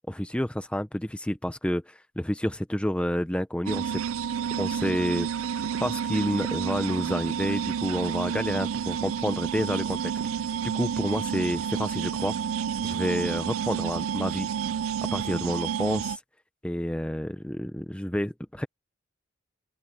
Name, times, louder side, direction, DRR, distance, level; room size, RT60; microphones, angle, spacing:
voice 1, 0.1-4.0 4.6-5.3 5.8-10.1 10.6-12.3 12.8-14.5 15.1-16.2 16.6-18.7, equal, 5° left, 0.8 m, -29 dB
sound 1, 3.7-16.2, right 8 dB, 90° right, 0.4 m, -30 dB
open air
head